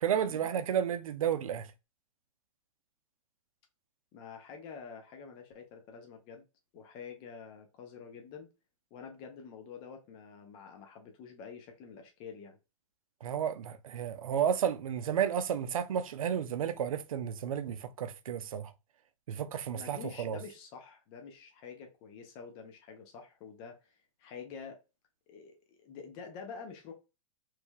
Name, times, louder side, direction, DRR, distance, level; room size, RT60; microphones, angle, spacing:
voice 1, 0.0-1.7 13.2-18.7 19.3-20.4, right 8 dB, 80° right, 0.6 m, -32 dB
voice 2, 4.1-6.4 6.7-8.5 8.9-12.6 19.7-24.8 25.3-26.9, left 6 dB, 30° left, 0.8 m, -47 dB
3.3 x 3.2 x 2.2 m
hypercardioid pair, 145°, 17 cm